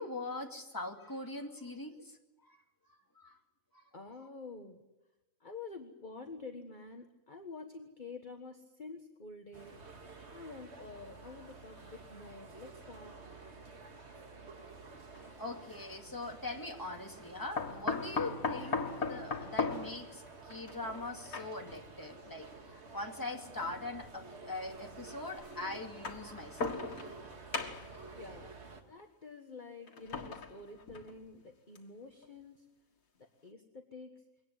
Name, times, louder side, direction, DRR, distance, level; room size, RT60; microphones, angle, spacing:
voice 1, 0.0-2.2 2.5-2.6 2.9-3.4 3.7-3.8 15.2-27.0, left 2 dB, 15° left, 2 dB, 2.4 m, -42 dB
voice 2, 3.9-4.9 5.4-10.0 10.3-13.1 28.2-28.6 28.9-32.7 33.2-34.2, left 3 dB, 35° left, 3 dB, 1.6 m, -48 dB
sound 1, 9.5-28.8, right 3 dB, 50° right, 2.2 m, -51 dB
sound 2, 15.1-15.3 17.6-21.8 22.8-22.9 24.1-24.2 25.8-27.2 27.5-28.0 29.9-31.3 31.8-31.9 32.2-32.3, left 4 dB, 90° left, 2.4 m, -37 dB
23.0 x 18.5 x 9.5 m, 0.98 s
omnidirectional pair, 1.5 m